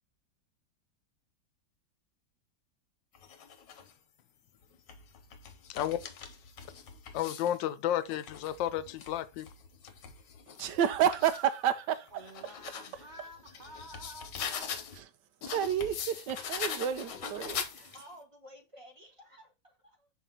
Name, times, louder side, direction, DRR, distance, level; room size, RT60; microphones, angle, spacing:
sound 1, 3.1-3.9 4.6-7.6 8.0-11.5 11.9-15.0 15.4-18.2, left 7 dB, 70° left, 1.6 m, -42 dB
voice 1, 7.1-9.5, left 11 dB, 90° left, 1.4 m, -32 dB
voice 2, 10.6-12.2 14.9-15.1 15.5-17.9, right 9 dB, 75° right, 1.2 m, -30 dB
voice 3, 12.1-14.8 16.4-16.6 17.0-17.6, right 1 dB, 40° right, 0.7 m, -51 dB
voice 4, 17.9-20.1, equal, 15° right, 1.8 m, -54 dB
6.2 x 4.6 x 3.9 m
omnidirectional pair, 2.0 m